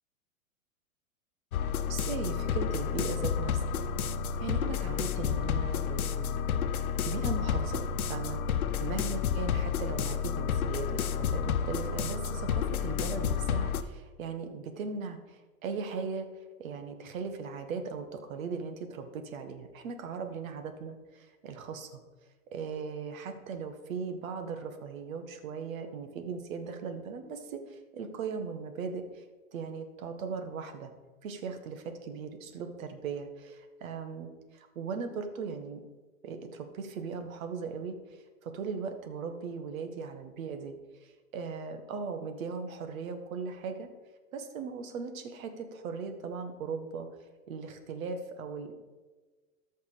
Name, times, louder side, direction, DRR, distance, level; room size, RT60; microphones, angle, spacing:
sound 1, 1.5-13.8, left 7 dB, 85° left, 0.9 m, -30 dB
voice 1, 1.9-3.7 4.4-6.5 7.0-22.0 22.5-29.3 29.5-30.9 31.2-35.8 36.2-43.9 44.3-47.1 47.5-48.7, right 5 dB, 70° right, 7 dB, 1.8 m, -38 dB
14.0 x 5.7 x 5.1 m, 1.3 s
hypercardioid pair, 120°, 42 cm